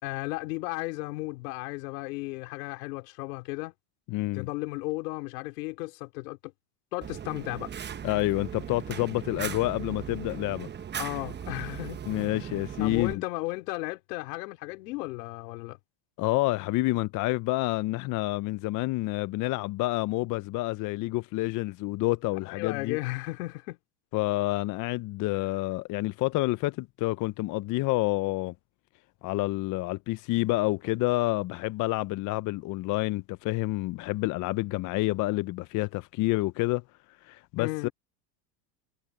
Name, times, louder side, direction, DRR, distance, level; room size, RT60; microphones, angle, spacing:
voice 1, 0.0-3.7 4.3-6.5 6.9-7.7 11.0-12.0 12.8-15.8 22.4-23.8 37.6-37.9, left 23 dB, 80° left, 4.6 m, -34 dB
voice 2, 4.1-4.5 8.0-10.7 12.1-13.2 16.2-23.0 24.1-28.5 29.2-36.8 37.2-37.9, left 19 dB, 40° left, 0.5 m, -28 dB
Fire, 7.0-13.1, right 8 dB, 20° right, 0.9 m, -38 dB
supercardioid pair, 115°, 48 cm